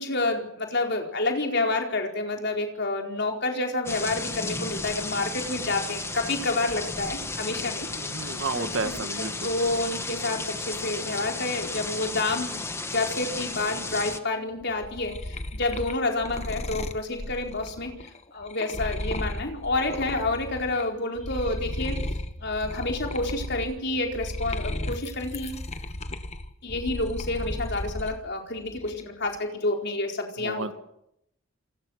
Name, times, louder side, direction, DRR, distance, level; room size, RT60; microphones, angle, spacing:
voice 1, 0.0-7.9 8.5-17.9 18.3-22.0 22.4-25.6 26.6-30.7, left 2 dB, 55° left, 2 dB, 4.5 m, -29 dB
sound 1, 3.9-14.2, left 3 dB, 10° left, 1.4 m, -34 dB
voice 2, 7.9-9.5 30.4-30.7, right 3 dB, 65° right, 9 dB, 1.7 m, -32 dB
sound 2, 14.6-20.8 21.2-28.2 28.6-29.2, left 1 dB, 30° left, 1.4 m, -35 dB
28.0 x 25.5 x 6.5 m, 0.79 s
head